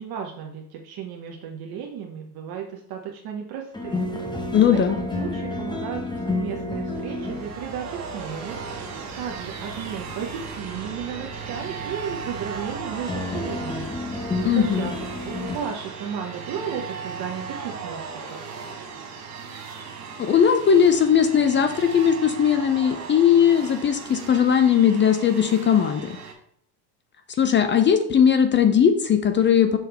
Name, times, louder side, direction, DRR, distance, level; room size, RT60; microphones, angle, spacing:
voice 1, 0.0-4.1 4.7-8.6 9.2-14.0 14.5-14.9 15.2-18.4, right 7 dB, 50° right, 2 dB, 1.0 m, -34 dB
sound 1, 3.7-15.6, left 2 dB, 10° left, 1.0 m, -32 dB
voice 2, 4.5-5.0 14.4-14.9 20.2-26.2 27.4-29.8, left 8 dB, 25° left, 8 dB, 0.5 m, -19 dB
sound 2, 6.9-26.3, right 5 dB, 35° right, 1.3 m, -37 dB
5.9 x 4.7 x 3.4 m, 0.70 s
supercardioid pair, 100°, 48 cm